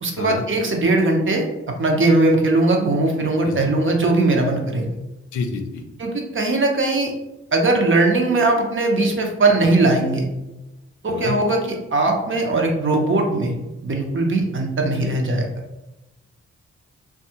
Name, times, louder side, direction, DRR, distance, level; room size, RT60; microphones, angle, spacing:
voice 1, 0.0-4.9 6.0-7.1 7.5-10.3 11.0-13.5 13.8-15.5, right 2 dB, 45° right, 2 dB, 0.7 m, -19 dB
voice 2, 5.3-5.8 11.0-11.3, left 4 dB, 80° left, 4 dB, 0.5 m, -28 dB
2.6 x 2.3 x 2.8 m, 1.0 s
supercardioid pair, 45°, 29 cm